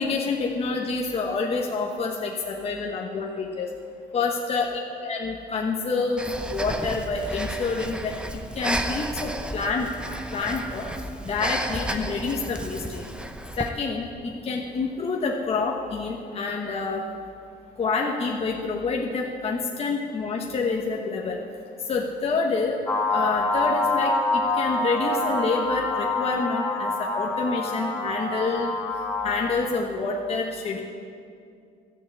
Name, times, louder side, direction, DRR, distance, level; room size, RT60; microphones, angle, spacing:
voice 1, 0.0-3.7 4.1-8.1 8.6-9.9 10.3-10.8 11.2-13.0 13.6-17.0 17.8-21.4 21.9-22.8 23.1-28.7 29.2-30.8, left 4 dB, 35° left, 0 dB, 1.1 m, -27 dB
Breathing, 6.2-13.7, right 1 dB, 5° right, 0.7 m, -32 dB
sound 1, 22.9-29.5, left 2 dB, 15° left, 1.4 m, -26 dB
13.5 x 6.8 x 8.6 m, 2.4 s
cardioid pair, 110°, 17 cm